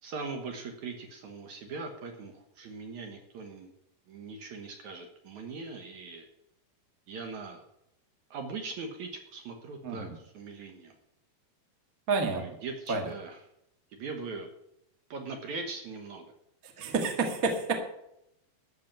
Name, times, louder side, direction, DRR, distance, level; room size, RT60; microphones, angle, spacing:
voice 1, 0.0-3.7 4.1-6.3 7.1-7.6 8.3-11.0 12.3-13.4 13.9-14.5 15.1-16.3, right 4 dB, 60° right, 4 dB, 2.2 m, -40 dB
voice 2, 9.8-10.1 12.1-12.4 12.9-13.1 16.6-17.7, right 4 dB, 40° right, 3 dB, 1.3 m, -29 dB
13.5 x 6.0 x 9.0 m, 0.81 s
omnidirectional pair, 4.6 m